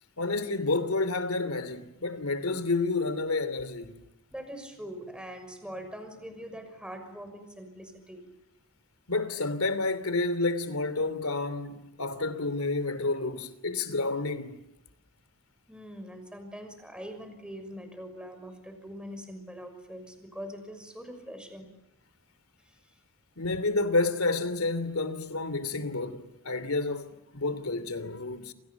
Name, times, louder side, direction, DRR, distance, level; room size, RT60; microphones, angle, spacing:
voice 1, 0.2-4.0 9.1-14.6 23.4-28.5, left 3 dB, 85° left, 2.9 m, -30 dB
voice 2, 4.3-8.2 15.7-21.7, equal, 5° right, 6.1 m, -43 dB
29.0 x 28.5 x 7.2 m
head